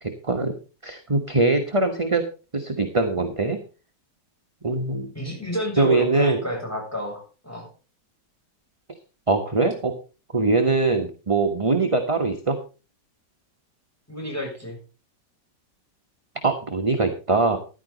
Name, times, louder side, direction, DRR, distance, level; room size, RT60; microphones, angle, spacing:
voice 1, 0.0-0.6 0.8-2.2 2.5-3.6 4.6-5.1 5.8-6.4 9.3-9.9 10.3-12.6 16.4-17.6, right 3 dB, 20° right, 5 dB, 1.0 m, -22 dB
voice 2, 5.2-7.7 14.1-14.8, equal, 10° left, 0 dB, 6.9 m, -30 dB
14.5 x 11.0 x 4.0 m, 0.34 s
omnidirectional pair, 2.0 m